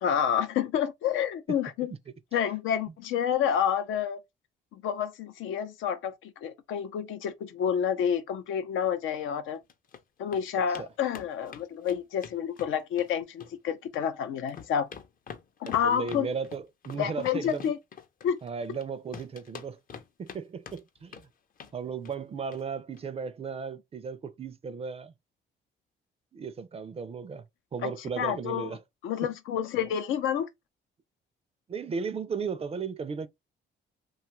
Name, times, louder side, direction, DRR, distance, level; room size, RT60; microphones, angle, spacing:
voice 1, 0.0-1.9 2.3-4.2 4.7-9.6 10.2-14.9 15.6-16.3 17.0-17.8 18.2-18.4 27.8-28.8 29.0-30.5, left 8 dB, 85° left, 0.6 m, -29 dB
sound 1, 9.5-10.0 10.3-10.4 10.7-10.9 11.1-13.1 13.4-14.1 14.4-18.8 19.1-20.4 20.7-21.3 21.6-21.8 22.0-22.2 22.5-22.6 22.9-23.0, left 6 dB, 45° left, 0.5 m, -45 dB
voice 2, 15.6-17.7 18.4-19.8 20.2-21.3 21.7-25.1 26.3-27.4 27.7-28.8 29.2-29.3 31.7-33.3, right 5 dB, 30° right, 0.4 m, -35 dB
2.8 x 2.3 x 2.9 m
cardioid pair, 90°, 20 cm